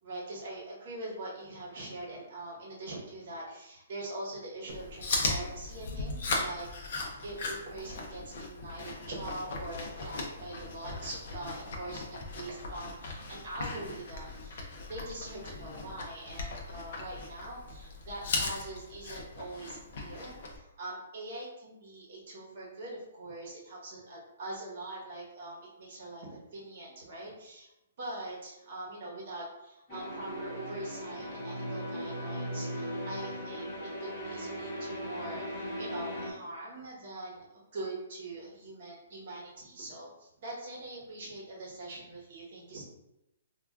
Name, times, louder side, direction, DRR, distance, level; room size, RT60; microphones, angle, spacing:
voice 1, 0.0-6.7 7.0-27.7 28.0-33.7 34.0-37.4 37.7-42.8, right 2 dB, 35° right, -4 dB, 0.9 m, -43 dB
Chewing mastication, 4.7-20.6, left 3 dB, 40° left, 0.5 m, -38 dB
sound 1, 29.9-36.3, equal, 15° left, 0.8 m, -38 dB
2.3 x 2.2 x 3.5 m, 0.91 s
hypercardioid pair, 180°, 0 cm